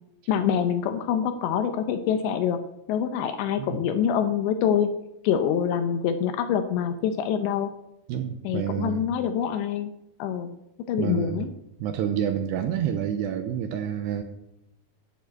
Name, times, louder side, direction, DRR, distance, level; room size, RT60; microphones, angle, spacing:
voice 1, 0.3-2.6 2.9-4.9 5.2-7.7 8.4-9.9 10.2-10.6 10.9-11.5, left 8 dB, 75° left, 9 dB, 2.8 m, -25 dB
voice 2, 8.1-9.1 11.0-11.5 11.8-14.2, right 9 dB, 80° right, 6 dB, 2.5 m, -29 dB
12.0 x 6.5 x 8.4 m, 0.84 s
omnidirectional pair, 5.6 m